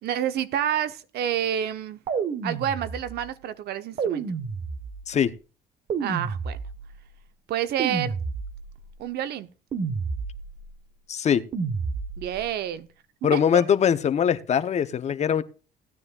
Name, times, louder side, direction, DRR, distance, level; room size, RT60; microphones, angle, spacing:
voice 1, 0.0-2.0 2.4-4.3 6.0-6.6 7.5-8.1 9.0-9.5 12.2-12.9 13.3-13.6, right 10 dB, 70° right, 0.9 m, -28 dB
sound 1, 2.1-3.3 4.0-5.2 5.9-7.0 7.8-8.8 9.7-10.7 11.5-12.4, right 5 dB, 45° right, 1.3 m, -30 dB
voice 2, 11.1-11.4 13.2-15.4, left 8 dB, 40° left, 0.8 m, -22 dB
17.0 x 9.6 x 2.4 m
cardioid pair, 110°, 17 cm